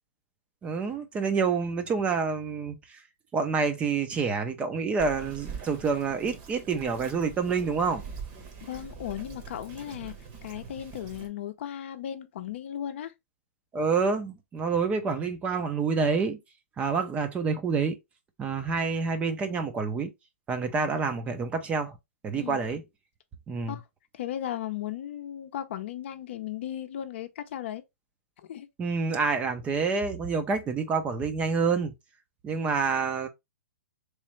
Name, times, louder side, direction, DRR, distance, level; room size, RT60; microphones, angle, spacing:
voice 1, 0.6-3.0 3.3-8.0 13.7-16.4 16.8-18.0 18.4-20.1 20.5-22.0 22.2-22.8 23.5-23.8 28.8-31.9 32.4-33.3, right 5 dB, 15° right, 0.6 m, -28 dB
Bird vocalization bird call bird song, 5.0-11.3, right 5 dB, 35° right, 1.1 m, -43 dB
voice 2, 8.6-10.1 10.4-13.1 22.4-22.6 23.7-23.8 24.1-27.8 28.5-28.7, left 11 dB, 55° left, 0.6 m, -36 dB
3.2 x 3.1 x 3.1 m
hypercardioid pair, 135°, 8 cm